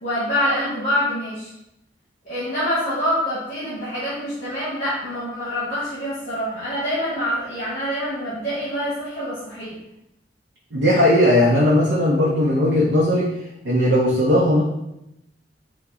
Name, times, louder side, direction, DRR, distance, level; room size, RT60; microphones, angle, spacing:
voice 1, 0.0-1.5 2.2-9.8, equal, 45° left, -8 dB, 1.1 m, -25 dB
voice 2, 10.7-13.3 13.6-14.6, left 1 dB, 65° right, -5 dB, 0.7 m, -17 dB
4.6 x 2.3 x 3.8 m, 0.86 s
head